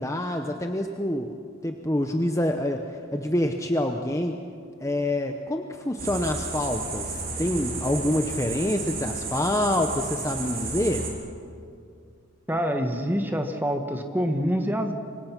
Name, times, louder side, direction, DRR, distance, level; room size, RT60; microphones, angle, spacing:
voice 1, 0.0-1.3 1.6-4.3 4.8-11.0, left 1 dB, 15° left, 4 dB, 0.8 m, -26 dB
sound 1, 6.0-11.1, right 3 dB, 45° right, 3.3 m, -33 dB
voice 2, 12.5-14.9, equal, 10° right, 5 dB, 1.5 m, -26 dB
25.5 x 24.0 x 6.0 m, 2.3 s
head